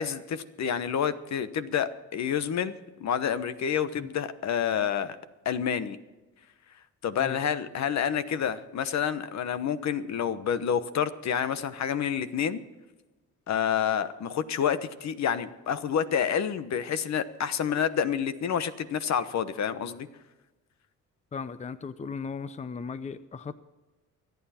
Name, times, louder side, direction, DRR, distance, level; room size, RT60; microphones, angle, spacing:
voice 1, 0.0-2.7 3.0-5.2 5.4-6.0 7.0-12.6 13.5-20.1, left 8 dB, 65° left, 12 dB, 1.1 m, -28 dB
voice 2, 21.3-23.5, left 5 dB, 25° left, 14 dB, 0.7 m, -37 dB
24.5 x 9.4 x 4.3 m, 1.1 s
cardioid pair, 90°, 30 cm